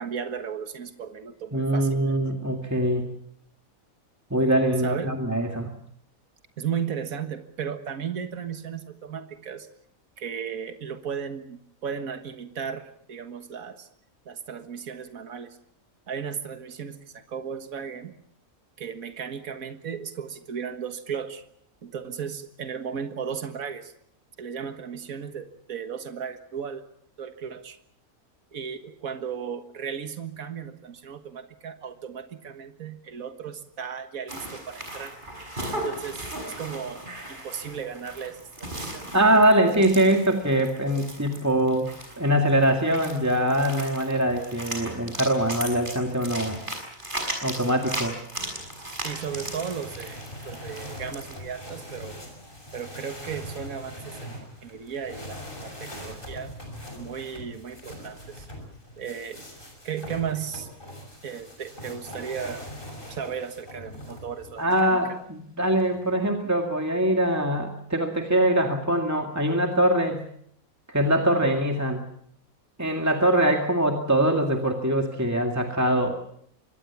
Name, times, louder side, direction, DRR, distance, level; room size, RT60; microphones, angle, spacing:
voice 1, 0.0-2.2 4.8-5.2 6.6-9.7 10.2-13.9 14.3-15.6 16.1-18.1 18.8-21.4 21.8-23.9 24.4-26.8 27.2-27.8 28.5-35.2 35.7-37.0 37.3-38.4 38.8-39.2 49.0-50.2 50.4-52.2 52.7-56.5 56.9-58.5 59.0-59.4 59.8-60.7 61.2-62.7 63.1-65.0, right 7 dB, 70° right, 8 dB, 2.0 m, -35 dB
voice 2, 1.5-3.1 4.3-5.7 39.1-41.9 42.2-46.6 47.4-48.1 64.6-70.2 70.9-72.0 72.8-76.2, right 1 dB, 10° right, 3 dB, 2.0 m, -23 dB
sound 1, 34.3-51.4, right 1 dB, 35° right, 6.3 m, -37 dB
sound 2, 48.6-64.9 65.6-66.3, equal, 35° left, 6.4 m, -42 dB
25.0 x 20.5 x 7.2 m, 0.70 s
omnidirectional pair, 1.5 m